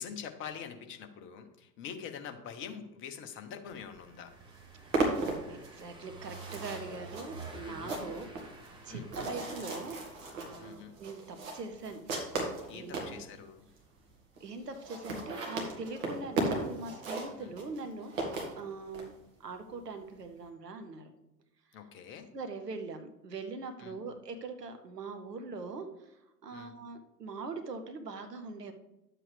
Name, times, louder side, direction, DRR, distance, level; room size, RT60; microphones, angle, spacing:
voice 1, 0.0-4.3 7.6-8.1 8.9-9.0 10.6-10.9 12.7-13.7 17.2-17.5 21.7-22.3 23.8-24.0 26.5-26.7, left 7 dB, 25° left, 6 dB, 0.9 m, -44 dB
Car passing by / Engine, 4.0-10.7, right 3 dB, 10° right, 1.1 m, -50 dB
sound 1, 4.0-4.1 4.3-13.2 13.8-13.9 14.1-14.2 14.4-14.5 14.7-19.1, right 2 dB, 55° right, 2.2 m, -36 dB
voice 2, 5.5-8.3 8.8-10.0 10.3-12.0 12.7-13.3 14.4-18.1 18.5-19.1 19.4-21.1 22.3-28.7, right 3 dB, 75° right, 7 dB, 1.1 m, -42 dB
10.5 x 7.5 x 3.4 m, 0.96 s
figure-of-eight pair, 90°, 48 cm